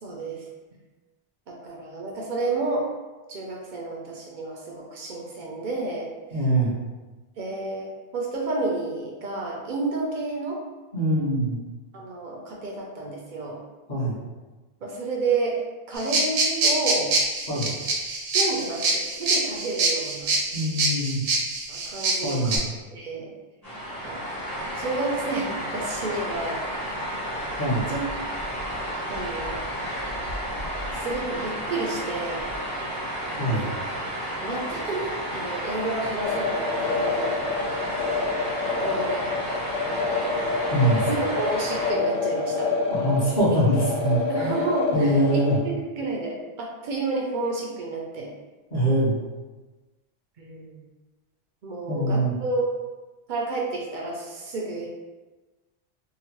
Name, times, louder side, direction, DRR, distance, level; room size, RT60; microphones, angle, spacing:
voice 1, 0.0-0.4 1.5-2.9 3.3-6.1 7.4-10.6 11.9-13.6 14.8-15.6 15.9-17.1 17.5-17.7 18.3-20.3 21.7-22.6 22.9-23.3 24.0-24.3 24.8-26.6 27.9-28.1 29.1-29.7 30.9-32.5 34.4-37.4 38.8-39.3 41.1-42.7 44.3-48.3 50.4-50.8 51.6-52.7 53.3-54.9, right 2 dB, 60° right, -2 dB, 0.5 m, -30 dB
voice 2, 6.3-6.8 10.9-11.6 13.9-14.2 17.5-17.7 20.5-21.2 22.2-22.6 27.6-27.9 33.4-33.6 40.7-41.1 42.9-44.5 44.9-45.6 48.7-49.2 51.9-52.3, right 1 dB, 45° left, -13 dB, 1.0 m, -23 dB
sound 1, 16.0-22.6, right 3 dB, 80° right, 0.9 m, -25 dB
sound 2, 23.6-41.9, right 1 dB, 20° left, 0.8 m, -32 dB
sound 3, 36.2-45.6, left 4 dB, 70° left, 0.8 m, -27 dB
2.9 x 2.1 x 2.9 m, 1.2 s
omnidirectional pair, 1.2 m